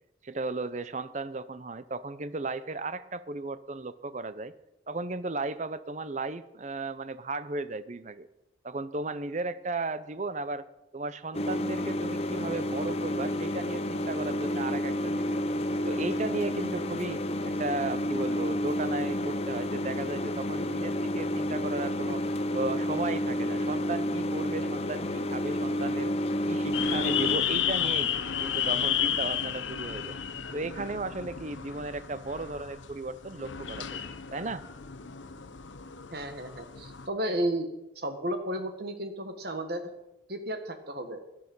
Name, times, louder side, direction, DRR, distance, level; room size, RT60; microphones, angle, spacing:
voice 1, 0.2-4.5 4.9-8.3 8.6-10.6 10.9-15.4 15.8-22.2 22.5-26.1 26.5-28.1 28.4-30.2 30.5-34.0 34.3-34.7, right 3 dB, 40° right, 14 dB, 0.6 m, -35 dB
sound 1, 11.3-27.4, left 1 dB, 35° left, 0.8 m, -30 dB
sound 2, 26.7-37.1, left 9 dB, 85° left, 0.9 m, -32 dB
voice 2, 36.1-37.7 38.0-39.8 40.3-41.2, right 1 dB, 55° right, 7 dB, 1.7 m, -33 dB
17.0 x 11.0 x 5.5 m, 0.92 s
head